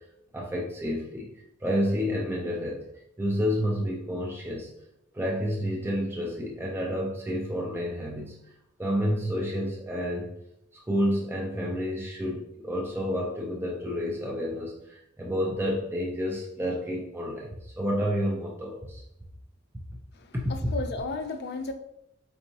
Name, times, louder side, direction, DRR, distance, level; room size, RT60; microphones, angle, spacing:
voice 1, 0.3-2.9 3.2-4.7 5.1-8.5 8.8-10.3 10.7-19.0 20.3-20.5, equal, 10° right, -2 dB, 0.5 m, -30 dB
voice 2, 20.1-21.7, left 3 dB, 55° left, 7 dB, 0.4 m, -34 dB
4.5 x 2.7 x 2.7 m, 0.78 s
head